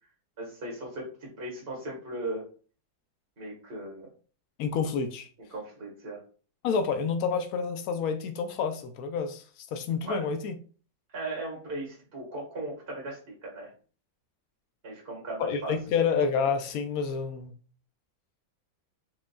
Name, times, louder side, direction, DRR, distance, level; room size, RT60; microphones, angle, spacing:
voice 1, 0.4-2.5 3.4-4.1 5.5-6.2 10.0-10.3 11.1-13.7 14.8-15.7, right 2 dB, 35° right, 1.6 m, -37 dB
voice 2, 4.6-5.3 6.6-9.4 9.7-10.6 15.4-17.5, left 6 dB, 85° left, 0.8 m, -28 dB
4.8 x 3.7 x 2.3 m
omnidirectional pair, 2.1 m